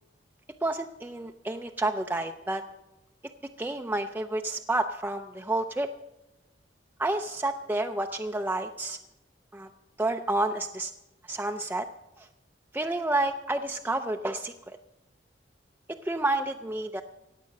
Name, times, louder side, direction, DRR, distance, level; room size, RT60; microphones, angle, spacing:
voice 1, 0.6-2.6 3.6-5.9 7.0-9.0 9.5-9.7 10.0-10.9 11.3-11.9 12.2-12.3 12.7-14.8 16.0-17.0, right 2 dB, 10° right, 4 dB, 0.5 m, -30 dB
16.5 x 8.9 x 6.5 m, 0.98 s
head